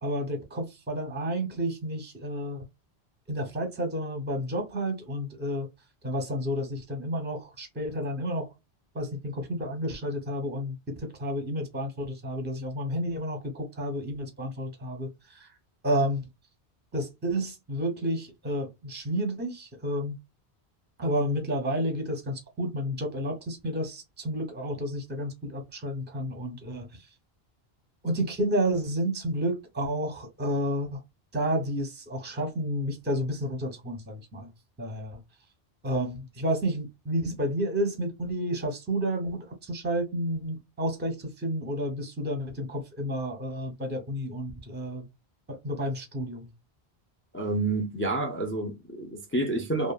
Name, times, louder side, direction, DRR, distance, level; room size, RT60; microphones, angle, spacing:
voice 1, 0.0-2.7 3.3-5.7 6.0-8.5 8.9-15.5 15.8-16.2 16.9-20.2 21.0-27.1 28.0-31.0 31.3-34.5 34.8-35.2 35.8-45.1 45.5-46.5, equal, 10° right, 0.7 m, -31 dB
voice 2, 47.3-49.9, right 2 dB, 20° left, 0.3 m, -29 dB
2.8 x 2.4 x 2.3 m
omnidirectional pair, 1.1 m